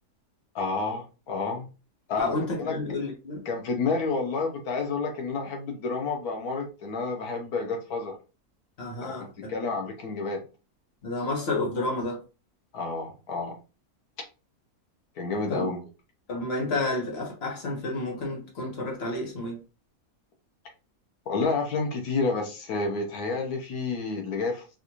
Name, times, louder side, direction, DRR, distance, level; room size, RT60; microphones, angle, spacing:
voice 1, 0.5-1.7 2.1-2.7 3.5-8.2 9.5-10.4 12.7-13.6 15.2-15.8 21.3-24.8, left 4 dB, 85° left, 1.3 m, -29 dB
voice 2, 2.2-3.4 8.8-9.5 11.0-12.2 15.5-15.7 16.3-19.6, left 2 dB, 45° left, 1.3 m, -30 dB
3.8 x 2.5 x 2.8 m
omnidirectional pair, 1.5 m